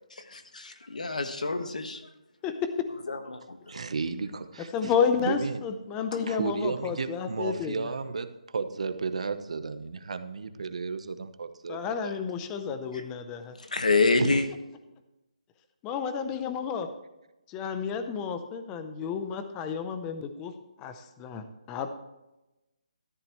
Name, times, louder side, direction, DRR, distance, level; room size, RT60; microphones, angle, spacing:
voice 1, 0.2-2.0 3.1-3.4 6.1-6.2 13.6-14.5, left 3 dB, 90° left, 7 dB, 1.6 m, -27 dB
voice 2, 3.7-4.9 5.2-5.6 6.3-12.1 14.1-14.4, right 4 dB, 60° right, 9 dB, 1.0 m, -33 dB
voice 3, 4.7-7.9 11.7-13.5 15.8-16.9 17.5-21.9, left 6 dB, 15° left, 9 dB, 0.6 m, -31 dB
13.5 x 11.0 x 3.1 m, 0.99 s
hypercardioid pair, 170°, 4 cm